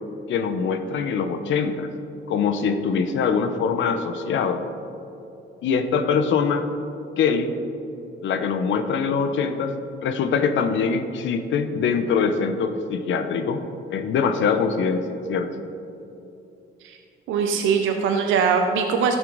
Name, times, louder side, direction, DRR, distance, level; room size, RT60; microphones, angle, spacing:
voice 1, 0.3-1.9 2.3-4.6 5.6-6.7 7.2-7.5 8.2-9.8 10.0-13.6 13.9-15.5, left 5 dB, 75° left, 8 dB, 0.7 m, -23 dB
voice 2, 17.3-19.2, right 6 dB, 85° right, 4 dB, 0.7 m, -21 dB
13.5 x 6.2 x 4.0 m, 2.8 s
cardioid pair, 90°, 20 cm